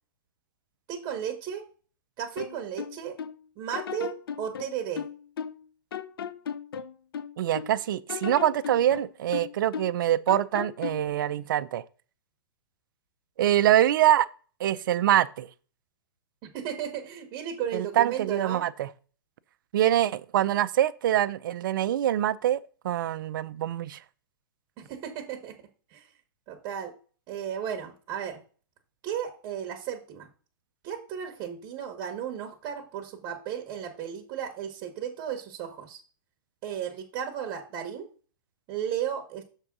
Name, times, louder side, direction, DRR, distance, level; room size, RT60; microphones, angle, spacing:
voice 1, 0.9-1.6 2.2-3.2 3.6-5.0 16.4-18.6 24.8-25.6 25.9-26.1 26.5-26.9 27.3-28.4 29.0-30.3 30.8-36.0 36.6-38.1 38.7-39.4, right 9 dB, 30° right, 1.3 m, -34 dB
sound 1, 2.4-3.4 3.7-5.6 5.9-7.7 8.1-10.0 10.3-11.1, left 8 dB, 85° left, 0.6 m, -36 dB
voice 2, 7.4-11.8 13.4-14.3 14.6-15.5 17.7-18.9 19.7-22.6 22.8-24.0, right 12 dB, 65° right, 0.5 m, -24 dB
6.7 x 3.7 x 6.0 m
hypercardioid pair, 145°, 12 cm